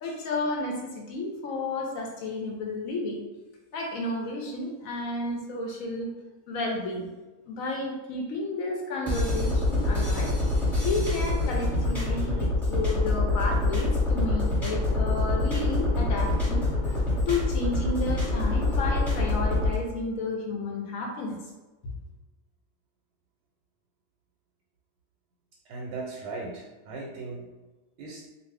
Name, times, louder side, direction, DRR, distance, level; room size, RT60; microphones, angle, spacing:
voice 1, 0.0-3.2 3.7-6.1 6.5-7.1 7.5-10.4 10.8-21.4 21.8-22.0, left 2 dB, 70° left, 0 dB, 1.0 m, -32 dB
sound 1, 9.1-19.7, left 2 dB, ahead, 1.0 m, -25 dB
voice 2, 25.7-27.5 28.0-28.2, right 3 dB, 90° right, -2 dB, 1.1 m, -37 dB
2.6 x 2.4 x 3.3 m, 1.1 s
omnidirectional pair, 1.6 m